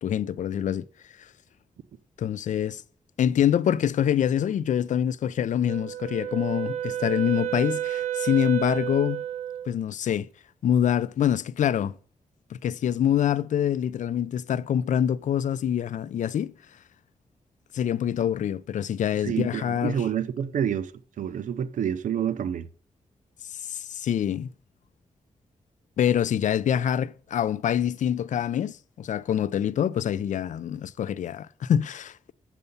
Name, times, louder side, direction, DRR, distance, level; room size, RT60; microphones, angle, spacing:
voice 1, 0.0-0.8 2.2-2.8 3.2-9.2 9.7-10.3 10.6-11.9 12.5-16.5 17.7-20.0 23.5-24.5 26.0-32.3, left 9 dB, 80° left, 0.5 m, -25 dB
Wind instrument woodwind instrument, 5.7-9.7, right 11 dB, 65° right, 1.2 m, -31 dB
voice 2, 19.2-20.9 21.2-22.7, right 9 dB, 85° right, 0.7 m, -28 dB
8.1 x 6.8 x 5.4 m
wide cardioid pair, 105°, 13 cm